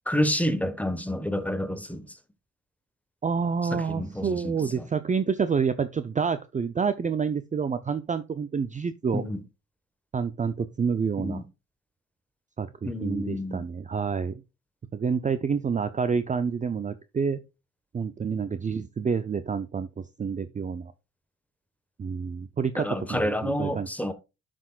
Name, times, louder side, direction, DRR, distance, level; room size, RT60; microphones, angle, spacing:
voice 1, 0.1-2.1 3.7-4.9 9.1-9.4 11.2-11.4 12.8-13.7 22.8-24.1, equal, 5° left, 1.3 m, -29 dB
voice 2, 3.2-9.2 10.1-11.4 12.6-14.4 14.9-17.4 17.9-20.9 22.0-24.1, right 6 dB, 25° right, 0.5 m, -28 dB
11.0 x 6.1 x 2.4 m
cardioid pair, 90°, 30 cm